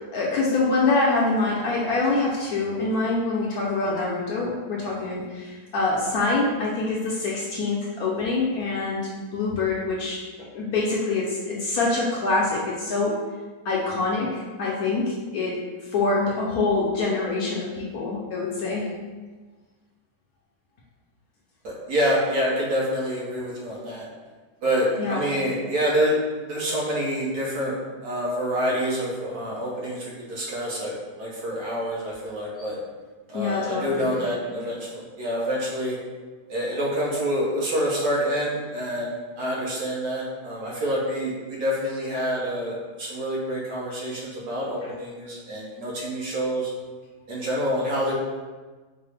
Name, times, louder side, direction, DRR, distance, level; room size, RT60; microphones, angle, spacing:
voice 1, 0.1-13.2 13.6-15.6 15.9-18.9 25.0-25.3 33.3-34.3 44.8-44.9, left 3 dB, 70° left, -4 dB, 0.9 m, -25 dB
voice 2, 21.6-24.1 24.6-26.2 26.5-27.7 28.0-32.8 33.3-36.0 36.5-46.7 47.3-48.1, equal, 65° right, -5 dB, 1.3 m, -27 dB
4.7 x 2.0 x 3.2 m, 1.4 s
omnidirectional pair, 1.9 m